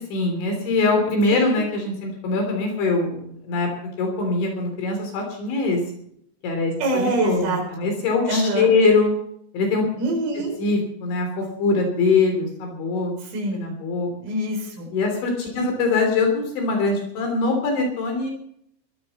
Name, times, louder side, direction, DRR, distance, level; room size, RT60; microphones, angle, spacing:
voice 1, 0.1-3.7 4.0-5.8 6.4-9.2 9.5-9.8 10.6-13.1 13.5-14.1 14.9-18.3, left 3 dB, 70° left, 3 dB, 5.6 m, -22 dB
voice 2, 1.3-1.6 6.8-7.9 8.3-8.7 10.0-10.6 13.3-13.7 14.2-14.9 15.5-15.7, right 1 dB, 85° right, 1 dB, 7.2 m, -25 dB
21.0 x 14.0 x 4.3 m, 0.68 s
omnidirectional pair, 5.7 m